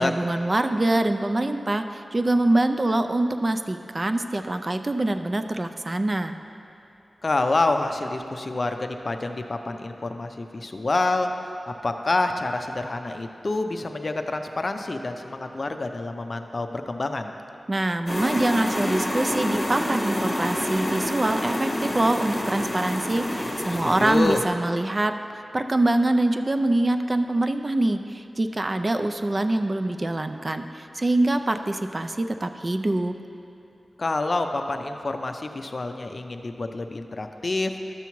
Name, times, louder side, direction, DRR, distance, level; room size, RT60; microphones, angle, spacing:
voice 1, 0.0-6.3 17.7-33.2, right 2 dB, 35° right, 7 dB, 0.3 m, -24 dB
voice 2, 7.2-17.3 23.7-24.4 34.0-37.7, left 2 dB, 50° left, 6 dB, 0.5 m, -27 dB
sound 1, 18.1-24.5, left 1 dB, 25° left, 1.5 m, -28 dB
12.5 x 6.9 x 3.1 m, 2.7 s
wide cardioid pair, 85°, 0 cm